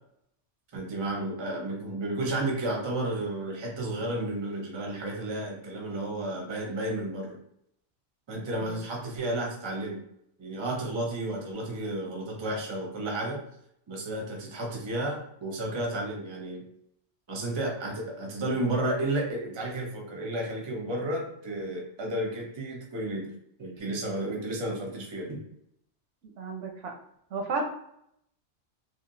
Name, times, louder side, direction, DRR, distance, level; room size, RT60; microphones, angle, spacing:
voice 1, 0.7-7.4 8.3-10.0 10.4-13.4 13.9-16.6 17.3-23.3 23.6-25.4, right 1 dB, 30° right, 0 dB, 0.5 m, -32 dB
voice 2, 26.4-26.9 27.3-27.6, right 4 dB, 80° right, 2 dB, 1.0 m, -32 dB
3.0 x 2.4 x 2.6 m, 0.74 s
omnidirectional pair, 1.2 m